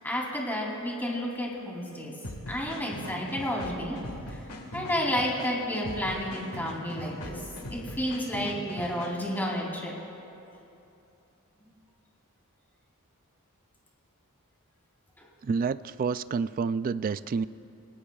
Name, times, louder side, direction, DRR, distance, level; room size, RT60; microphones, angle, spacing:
voice 1, 0.0-2.2 2.5-4.0 4.3-4.4 4.7-7.4 7.7-10.0 15.2-15.3, equal, 10° left, -3 dB, 3.1 m, -31 dB
sound 1, 2.2-9.4, left 1 dB, 70° left, 1.8 m, -41 dB
voice 2, 15.4-17.5, right 5 dB, 40° right, 14 dB, 0.3 m, -29 dB
29.5 x 18.5 x 2.4 m, 2.8 s
head